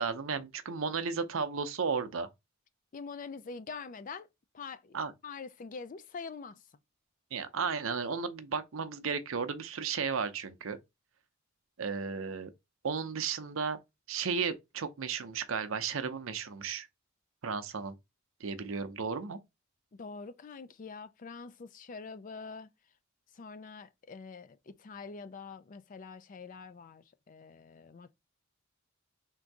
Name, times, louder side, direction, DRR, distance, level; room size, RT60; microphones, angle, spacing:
voice 1, 0.0-2.3 4.9-5.1 7.3-10.8 11.8-12.5 12.8-13.8 14.1-16.9 17.4-17.9 18.4-19.4, right 5 dB, 70° right, 0.6 m, -34 dB
voice 2, 2.9-4.3 4.5-5.0 5.2-6.6 20.0-22.7 23.3-28.1, left 4 dB, 40° left, 0.4 m, -45 dB
3.7 x 2.6 x 4.6 m
head